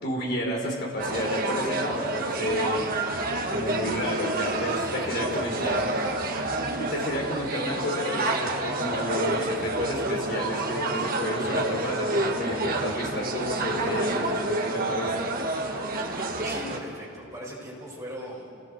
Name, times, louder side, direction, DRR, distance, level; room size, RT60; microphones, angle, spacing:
voice 1, 0.0-3.0 3.5-5.9 6.6-15.1, left 1 dB, 50° left, 0 dB, 4.4 m, -31 dB
sound 1, 1.0-16.8, right 2 dB, 45° right, 2.0 m, -29 dB
voice 2, 4.9-6.4 7.0-7.3 12.8-12.9 16.1-18.6, equal, 15° right, -4 dB, 6.1 m, -41 dB
28.5 x 18.5 x 8.3 m, 2.6 s
head